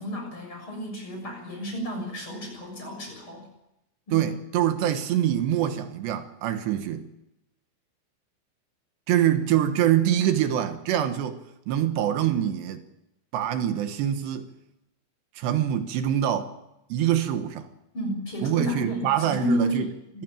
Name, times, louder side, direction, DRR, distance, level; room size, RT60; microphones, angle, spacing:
voice 1, 0.0-3.4 4.1-4.2 17.9-20.2, equal, 30° left, 7.8 m, -31 dB
voice 2, 4.1-7.1 9.1-11.4 11.7-12.8 13.3-14.5 15.4-16.5 16.9-17.7 18.4-19.9, right 11 dB, 80° right, 3.4 m, -25 dB
25.0 x 15.5 x 9.0 m
omnidirectional pair, 5.0 m